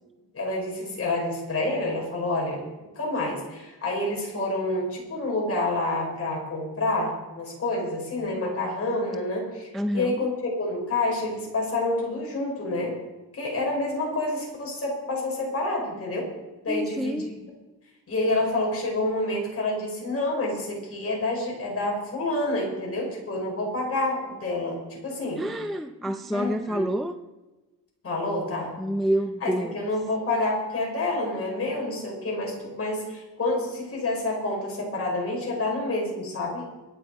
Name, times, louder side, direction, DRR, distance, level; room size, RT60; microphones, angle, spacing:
voice 1, 0.3-2.6 3.0-13.0 13.3-16.3 16.6-17.3 18.1-25.4 26.3-26.9 28.0-28.7 29.4-36.6, left 2 dB, 35° left, 5.4 m, -28 dB
voice 2, 9.7-10.3 16.7-17.3 25.4-27.2 28.8-29.8, equal, ahead, 0.4 m, -28 dB
22.5 x 9.3 x 4.7 m
wide cardioid pair, 160°, 39 cm